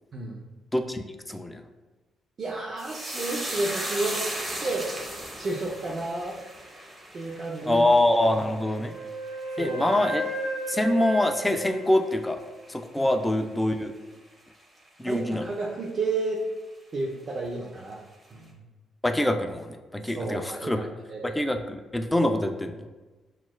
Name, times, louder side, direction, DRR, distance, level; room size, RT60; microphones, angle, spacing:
voice 1, 0.1-0.4 2.4-4.9 5.3-6.4 7.1-7.9 8.4-8.5 9.6-9.9 13.0-13.1 15.1-16.4 16.9-18.0 18.3-18.6 20.2-20.8 21.1-21.4, right 3 dB, 45° right, -4 dB, 0.5 m, -31 dB
voice 2, 0.7-1.6 7.7-8.9 9.6-10.2 10.7-12.4 12.7-13.9 15.0-15.5 19.0-20.8 21.2-22.7, left 1 dB, 10° left, 6 dB, 0.4 m, -25 dB
sound 1, 2.8-11.4 11.7-12.3 12.6-12.9, right 1 dB, 15° right, 0.8 m, -37 dB
Wind instrument woodwind instrument, 8.5-12.7, right 1 dB, 70° left, 0.9 m, -34 dB
6.0 x 2.4 x 2.2 m, 1.2 s
cardioid pair, 90°, 0 cm